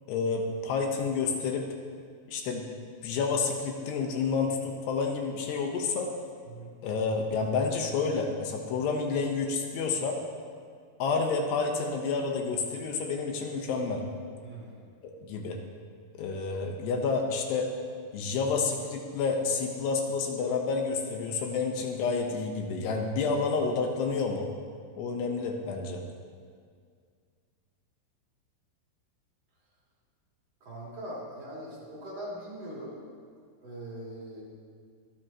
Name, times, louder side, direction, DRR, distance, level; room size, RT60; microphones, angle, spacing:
voice 1, 0.1-1.7 2.3-2.6 3.0-6.1 6.8-10.2 11.0-14.0 15.0-15.6 16.1-17.7 18.1-24.5 25.0-26.0, left 4 dB, 80° left, 2 dB, 3.2 m, -29 dB
voice 2, 14.4-14.9 30.6-33.0 33.6-34.4, right 1 dB, 40° right, -6 dB, 3.8 m, -41 dB
24.5 x 10.5 x 3.0 m, 2.1 s
omnidirectional pair, 4.8 m